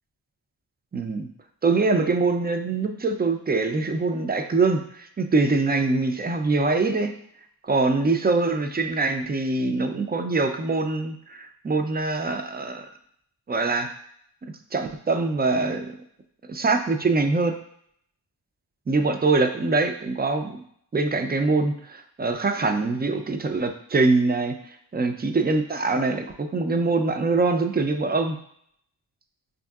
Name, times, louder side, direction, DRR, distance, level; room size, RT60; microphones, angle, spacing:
voice 1, 0.9-1.3 1.6-7.1 7.6-12.9 13.5-13.9 14.7-16.0 16.5-17.5 18.9-20.6 20.9-24.5 24.9-28.4, right 3 dB, 25° right, 6 dB, 0.3 m, -23 dB
5.2 x 2.6 x 2.3 m, 0.67 s
cardioid pair, 60°, 46 cm